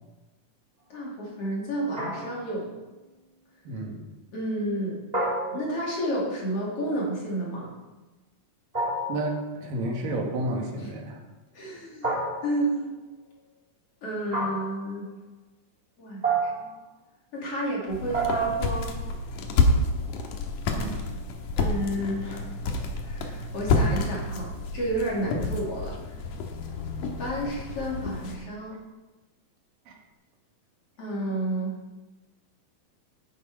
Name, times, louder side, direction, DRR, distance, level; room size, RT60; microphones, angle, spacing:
voice 1, 0.9-2.7 4.3-5.0 5.5-7.7 10.8-10.9 11.5-12.1 12.4-12.9 14.0-15.1 16.0-16.2 16.6-16.7 17.3-19.0 21.6-22.5 23.0-26.0 27.0-28.8 31.0-31.7, right 1 dB, 45° left, -4 dB, 3.4 m, -31 dB
sound 1, 2.0-2.6 5.1-6.0 8.7-9.4 12.0-12.7 14.3-14.8 16.2-16.8 18.1-18.8, right 3 dB, 15° right, 2.0 m, -29 dB
voice 2, 3.7-4.0 9.1-11.2 20.7-21.0 29.9-30.0, right 1 dB, 80° right, 1 dB, 3.3 m, -31 dB
sound 2, 17.9-28.4, left 3 dB, 75° left, 2.6 m, -29 dB
10.5 x 9.4 x 4.9 m, 1.1 s
omnidirectional pair, 3.8 m